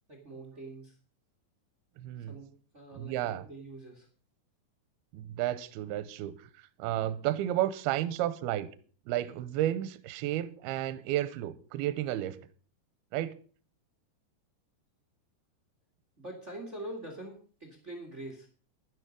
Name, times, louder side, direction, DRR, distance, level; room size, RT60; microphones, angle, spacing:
voice 1, 0.1-1.0 2.2-4.1 16.2-18.5, right 1 dB, 45° right, 0.9 m, -44 dB
voice 2, 2.0-2.4 2.9-3.4 5.1-8.7 9.1-12.4 13.1-13.4, right 13 dB, 75° right, 2.5 m, -32 dB
11.0 x 11.0 x 5.2 m
omnidirectional pair, 5.0 m